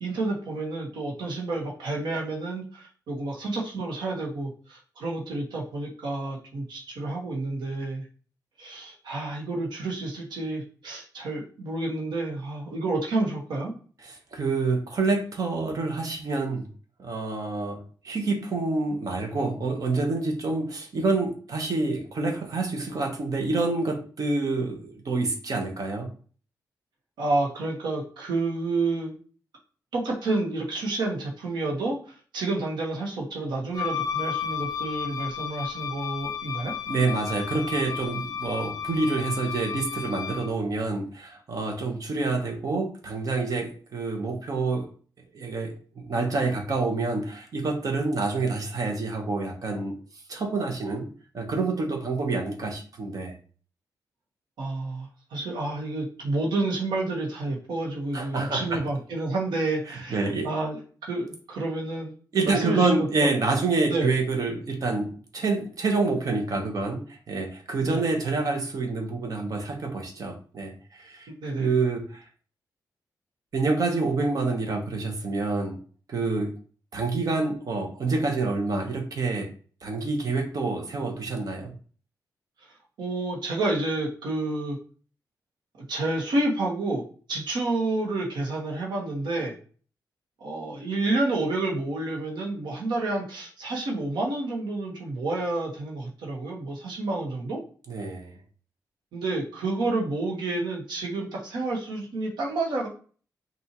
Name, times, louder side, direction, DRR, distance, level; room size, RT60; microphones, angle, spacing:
voice 1, 0.0-8.0 8.6-13.7 27.2-29.2 29.9-36.7 54.6-62.1 62.4-63.3 63.9-64.1 67.8-68.0 71.3-71.7 83.0-84.8 85.8-87.0 87.3-89.6 90.4-97.6 99.1-102.9, right 2 dB, 90° right, -1 dB, 1.3 m, -29 dB
voice 2, 14.0-16.7 17.0-26.1 36.9-44.9 45.3-45.7 46.0-50.0 50.3-51.1 51.3-53.3 58.1-58.8 59.9-60.5 62.3-72.2 73.5-75.8 76.1-76.5 76.9-79.5 79.8-81.7 97.9-98.4, right 3 dB, 55° right, 3 dB, 1.1 m, -27 dB
Wind instrument woodwind instrument, 33.7-40.5, left 7 dB, 60° left, 0.4 m, -33 dB
5.6 x 2.7 x 3.0 m, 0.41 s
cardioid pair, 110°, 7 cm